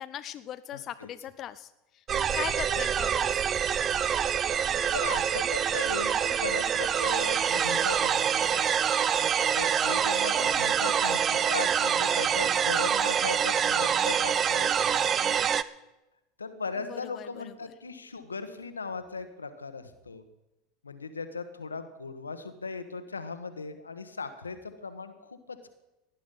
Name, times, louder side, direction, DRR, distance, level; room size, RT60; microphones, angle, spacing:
voice 1, 0.0-3.5 10.3-10.9 16.9-17.5, left 11 dB, 40° left, 12 dB, 0.6 m, -40 dB
voice 2, 0.7-1.1 2.4-2.5 4.9-8.2 8.5-8.6 9.5-15.5 16.4-20.2 20.8-25.7, left 4 dB, 90° left, 10 dB, 1.2 m, -38 dB
sound 1, 2.1-15.6, right 8 dB, 35° right, 0.6 m, -26 dB
17.5 x 10.5 x 5.5 m, 0.97 s
hypercardioid pair, 80°, 0 cm